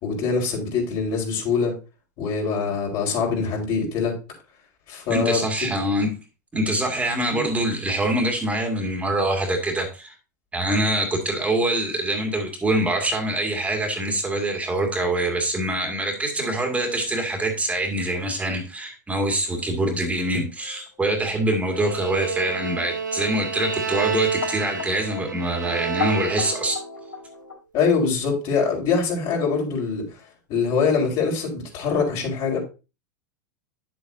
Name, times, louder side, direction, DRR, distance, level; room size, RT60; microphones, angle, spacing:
voice 1, 0.0-1.8 2.2-4.2 4.9-5.4 7.3-7.5 27.7-30.1 30.5-32.6, left 5 dB, 50° left, 4.5 m, -23 dB
voice 2, 5.1-6.2 6.5-10.1 10.5-26.8, right 1 dB, 15° right, 2.2 m, -24 dB
sound 1, 19.1-27.5, left 5 dB, 85° left, 4.5 m, -37 dB
Bowed string instrument, 21.7-26.9, right 6 dB, 90° right, 1.0 m, -30 dB
9.7 x 7.7 x 2.7 m
hypercardioid pair, 90°, 10 cm